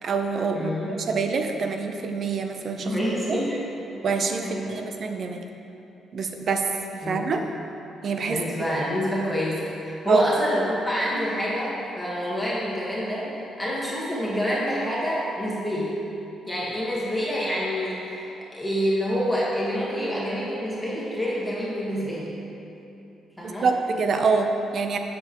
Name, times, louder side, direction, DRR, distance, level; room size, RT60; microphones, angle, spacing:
voice 1, 0.0-2.9 3.3-3.5 4.0-5.4 6.1-7.5 8.0-8.4 10.1-10.2 23.4-25.0, right 4 dB, 55° right, 5 dB, 0.5 m, -26 dB
voice 2, 0.5-0.9 2.8-3.7 4.4-4.8 7.0-7.2 8.3-16.0 16.5-22.4 23.4-23.7, equal, 5° left, -7 dB, 1.4 m, -27 dB
7.2 x 6.9 x 3.0 m, 2.9 s
cardioid pair, 90°, 0 cm